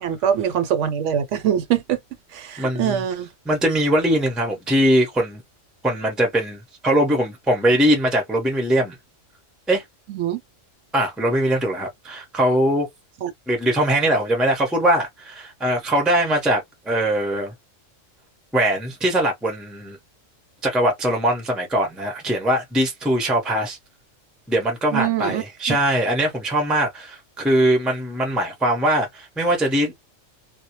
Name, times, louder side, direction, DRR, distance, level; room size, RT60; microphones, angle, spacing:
voice 1, 0.0-2.0 2.3-3.3 10.1-10.4 13.2-13.3 24.9-25.8, right 9 dB, 70° right, 0.9 m, -23 dB
voice 2, 2.6-3.0 3.5-5.4 5.8-9.0 9.7-9.8 10.9-12.9 13.5-17.5 18.5-20.0 20.6-23.8 24.5-29.9, right 1 dB, ahead, 0.5 m, -21 dB
2.2 x 2.1 x 2.9 m
omnidirectional pair, 1.3 m